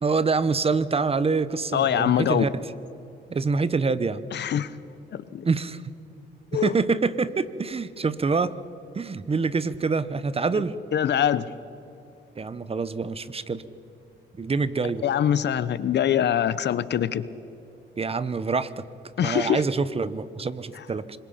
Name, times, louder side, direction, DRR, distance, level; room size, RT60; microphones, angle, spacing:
voice 1, 0.0-2.5 3.3-4.2 5.4-5.9 6.5-8.5 8.9-10.7 12.4-13.6 14.4-15.0 18.0-18.8 19.2-21.2, right 4 dB, 30° right, 15 dB, 1.0 m, -26 dB
voice 2, 1.7-2.5 4.3-4.7 5.3-5.4 6.5-6.7 10.9-11.5 15.0-17.3 19.2-19.6, left 9 dB, 60° left, 16 dB, 0.9 m, -23 dB
26.0 x 21.5 x 5.8 m, 2.7 s
cardioid pair, 90°, 20 cm